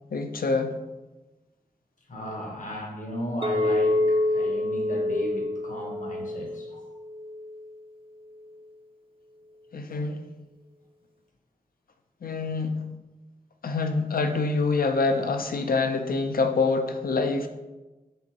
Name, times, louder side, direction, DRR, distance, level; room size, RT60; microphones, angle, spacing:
voice 1, 0.1-0.8 9.7-10.3 12.2-12.8 13.6-17.5, left 3 dB, 80° left, 6 dB, 0.5 m, -26 dB
voice 2, 2.1-6.9 9.9-10.0, left 1 dB, 60° left, 0 dB, 1.0 m, -35 dB
Chink clink, 3.4-7.7, left 1 dB, 40° right, 0.4 m, -27 dB
5.0 x 3.6 x 2.9 m, 1.1 s
wide cardioid pair, 60°, 15 cm